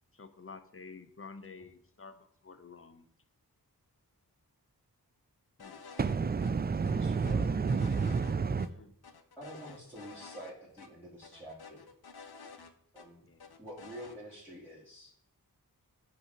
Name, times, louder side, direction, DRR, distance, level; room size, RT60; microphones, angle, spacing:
voice 1, 0.1-3.1 5.6-5.8 8.4-8.9 13.2-13.5, left 4 dB, 35° left, 0.7 m, -51 dB
sound 1, 5.6-6.2 6.4-6.5 6.9-8.3 8.6-8.7 9.0-10.5 10.8-10.9 11.2-13.1 13.4-14.2, left 5 dB, 75° left, 0.7 m, -51 dB
voice 2, 6.0-8.7, right 5 dB, 25° right, 0.3 m, -30 dB
voice 3, 6.9-7.5 9.4-11.9 12.9-13.3 13.6-15.1, right 1 dB, 5° left, 1.8 m, -47 dB
8.5 x 2.9 x 5.9 m
wide cardioid pair, 50°, 38 cm